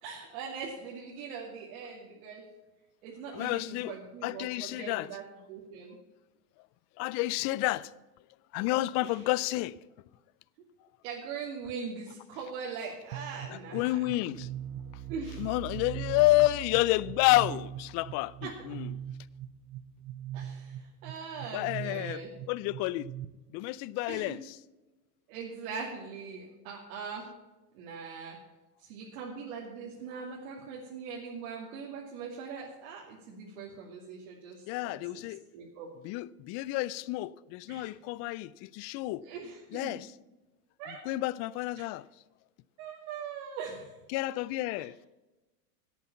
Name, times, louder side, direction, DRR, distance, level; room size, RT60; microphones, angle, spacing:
voice 1, 0.0-2.5 3.0-6.0 9.0-9.2 11.0-14.0 15.1-15.5 18.4-18.5 20.3-22.4 24.1-24.4 25.3-27.3 27.7-28.4 28.8-35.3 35.5-35.9 37.7-37.9 39.2-40.0 40.8-41.0 41.8-41.9 42.8-44.0 44.8-44.9, right 5 dB, 65° right, 2.5 m, -41 dB
voice 2, 3.3-3.9 4.2-5.1 7.0-7.9 8.5-9.7 13.7-14.5 15.4-18.9 21.5-22.2 22.5-23.1 23.5-24.6 34.7-35.4 36.0-39.2 39.7-40.1 40.8-42.0 44.1-44.9, left 18 dB, 35° left, 0.4 m, -30 dB
sound 1, 13.1-23.3, right 11 dB, 45° right, 0.8 m, -41 dB
11.0 x 8.5 x 7.0 m
hypercardioid pair, 110°, 46 cm